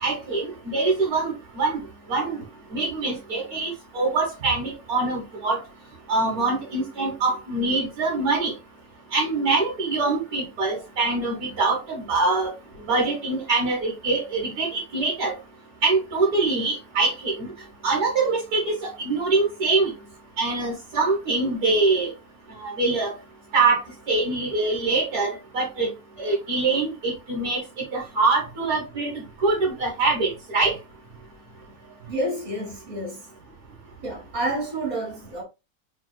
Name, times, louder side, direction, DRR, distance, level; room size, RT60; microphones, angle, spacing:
voice 1, 0.0-1.8 2.1-2.4 2.7-5.6 6.1-8.5 9.1-12.5 12.9-15.3 15.8-17.5 17.8-19.9 20.4-22.1 22.6-23.1 23.5-25.9 26.2-27.6 27.9-30.7, right 3 dB, 80° right, 1.8 m, -24 dB
voice 2, 31.6-33.3 34.0-35.4, right 1 dB, 30° right, 1.9 m, -30 dB
4.7 x 3.6 x 2.2 m
omnidirectional pair, 1.6 m